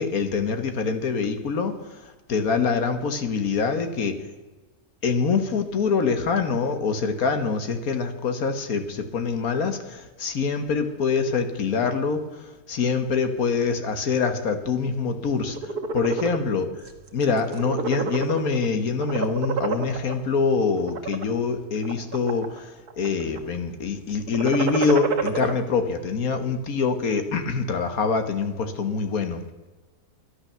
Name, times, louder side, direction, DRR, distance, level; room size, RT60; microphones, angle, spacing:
voice 1, 0.0-1.7 2.3-4.1 5.0-12.2 12.7-15.6 15.9-16.6 17.1-22.7 23.0-29.4, left 5 dB, 70° left, 8 dB, 1.6 m, -25 dB
sound 1, 15.4-16.4 16.9-17.1 17.4-18.7 19.0-20.1 20.8-21.2 21.8-22.6 22.9-23.4 24.2-25.5, right 5 dB, 80° right, 1.9 m, -28 dB
11.5 x 11.5 x 6.8 m, 1.2 s
omnidirectional pair, 1.6 m